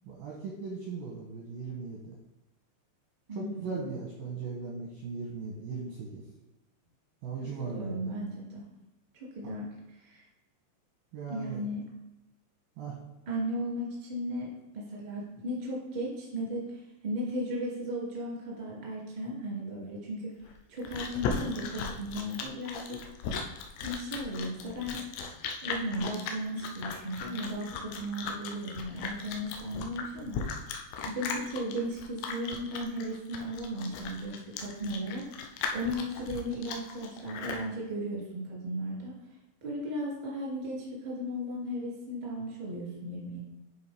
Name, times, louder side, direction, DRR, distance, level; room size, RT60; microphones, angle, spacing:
voice 1, 0.1-2.0 3.3-6.2 7.2-8.0 11.1-11.6 12.8-13.0, right 4 dB, 80° right, -2 dB, 2.1 m, -38 dB
voice 2, 3.3-3.9 7.6-8.6 9.3-10.2 11.3-11.8 13.2-14.5 14.7-20.3 20.7-23.0 23.8-25.0 25.6-30.4 31.0-35.2 35.7-39.1 39.6-43.4, equal, 25° right, -5 dB, 0.8 m, -36 dB
Chewing mastication, 20.4-37.7, left 5 dB, 85° left, 2.6 m, -37 dB
10.0 x 4.3 x 3.4 m, 0.99 s
omnidirectional pair, 5.3 m